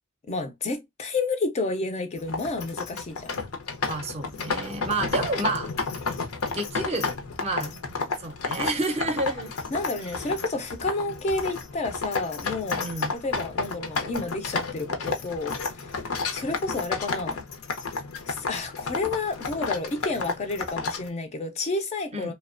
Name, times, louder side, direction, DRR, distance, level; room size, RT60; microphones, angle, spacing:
voice 1, 0.3-3.4 9.7-12.9 13.1-16.0 16.3-17.4 18.3-22.3, left 3 dB, 30° left, 0.4 m, -30 dB
sound 1, 2.2-21.1, left 4 dB, 85° left, 0.6 m, -32 dB
voice 2, 3.9-5.7 6.5-7.1 7.4-9.5 12.8-13.1 22.1-22.3, right 2 dB, 30° right, 0.5 m, -30 dB
2.7 x 2.1 x 2.3 m
head